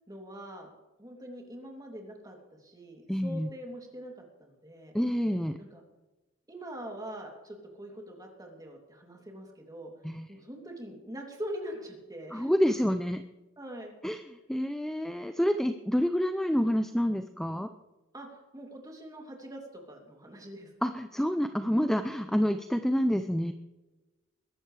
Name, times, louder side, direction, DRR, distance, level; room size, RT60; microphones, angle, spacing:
voice 1, 0.1-0.7 1.0-4.1 4.4-4.9 5.7-5.8 6.5-9.9 10.3-12.5 13.6-13.9 18.1-20.7, equal, 20° right, 1 dB, 2.9 m, -43 dB
voice 2, 3.1-3.5 4.9-5.6 10.0-10.3 12.3-13.2 14.0-17.7 20.8-23.5, equal, ahead, 8 dB, 0.5 m, -28 dB
21.5 x 11.5 x 3.4 m, 1.1 s
head